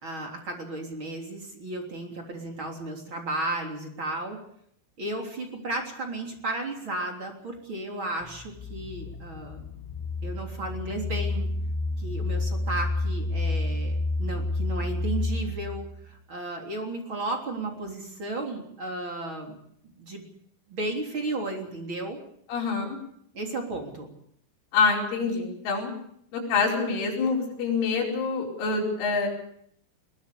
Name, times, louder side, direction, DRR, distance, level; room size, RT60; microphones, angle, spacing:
voice 1, 0.0-4.4 5.0-9.6 10.2-11.5 12.0-19.5 20.0-20.3 20.7-22.2 23.3-24.1, right 2 dB, 30° right, 2 dB, 3.3 m, -34 dB
sound 1, 8.2-16.0, left 2 dB, 5° left, 6.7 m, -30 dB
voice 2, 22.5-23.0 24.7-25.9 26.3-29.3, left 4 dB, 65° left, -3 dB, 7.3 m, -26 dB
21.5 x 21.5 x 6.9 m, 0.69 s
omnidirectional pair, 6.0 m